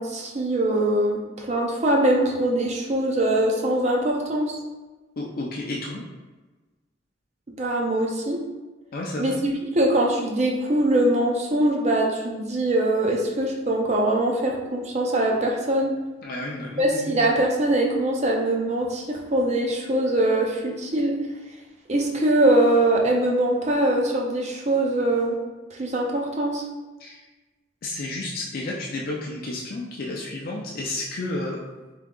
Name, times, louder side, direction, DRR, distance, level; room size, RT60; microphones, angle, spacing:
voice 1, 0.0-4.5 7.6-8.4 9.2-16.0 16.8-21.1 21.9-25.4 25.7-26.6, right 1 dB, 35° right, -1 dB, 0.6 m, -22 dB
voice 2, 5.2-6.0 8.9-9.3 16.2-17.2 27.0-27.3 27.8-31.6, left 2 dB, 50° left, -2 dB, 0.5 m, -31 dB
3.6 x 2.8 x 3.7 m, 1.2 s
head